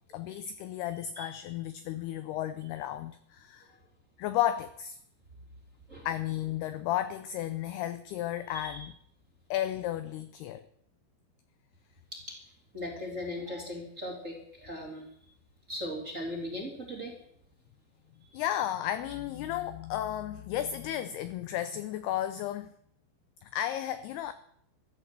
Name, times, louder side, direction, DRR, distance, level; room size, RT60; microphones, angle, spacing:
voice 1, 0.1-3.7 4.2-5.0 6.1-8.9 9.5-10.6 18.3-22.7 23.4-24.3, left 12 dB, 80° left, 2.3 m, -33 dB
voice 2, 8.5-8.9 12.1-12.4 12.7-15.1 15.7-17.1 18.2-18.4, left 1 dB, 20° right, 2.7 m, -38 dB
14.5 x 11.5 x 7.6 m
omnidirectional pair, 5.3 m